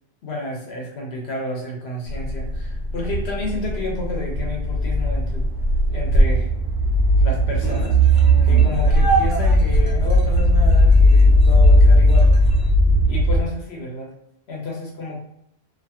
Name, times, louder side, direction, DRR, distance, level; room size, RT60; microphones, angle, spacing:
voice 1, 0.2-5.4 5.9-6.5 7.2-8.0 8.4-12.3 13.0-14.1 14.5-15.2, left 2 dB, 80° left, -1 dB, 1.1 m, -31 dB
sound 1, 2.1-13.4, equal, 85° right, 1.0 m, -17 dB
sound 2, 7.6-12.7, right 4 dB, 40° right, 0.5 m, -29 dB
2.7 x 2.3 x 2.8 m, 0.75 s
omnidirectional pair, 1.1 m